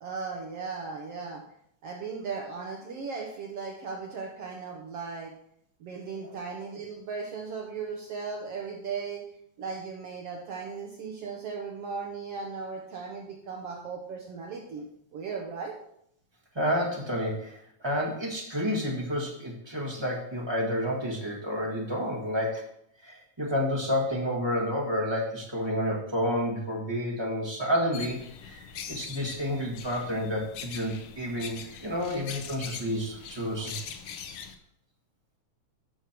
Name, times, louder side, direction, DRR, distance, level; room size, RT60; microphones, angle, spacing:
voice 1, 0.0-1.4 1.8-5.3 5.8-9.2 9.6-14.9 15.1-15.7, right 5 dB, 60° right, 0 dB, 1.7 m, -37 dB
voice 2, 16.5-22.7 23.0-33.8, equal, 45° right, -3 dB, 0.3 m, -30 dB
sound 1, 27.9-34.5, left 7 dB, 80° left, 1.3 m, -42 dB
11.5 x 6.6 x 4.5 m, 0.72 s
omnidirectional pair, 3.7 m